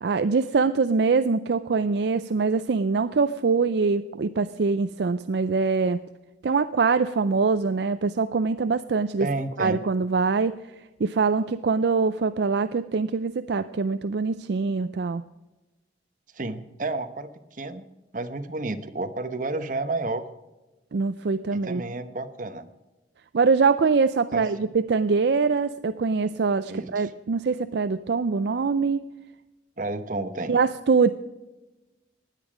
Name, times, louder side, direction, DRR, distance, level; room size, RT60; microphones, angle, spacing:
voice 1, 0.0-6.0 6.4-9.3 9.6-10.6 11.0-15.2 20.9-21.8 23.3-29.1 30.5-31.1, right 4 dB, 65° right, 12 dB, 0.4 m, -23 dB
voice 2, 9.2-9.8 16.3-17.9 18.1-20.3 21.5-22.7 24.3-24.7 26.7-27.1 29.8-30.5, right 2 dB, 45° right, 9 dB, 1.0 m, -31 dB
16.5 x 11.0 x 5.0 m, 1.1 s
head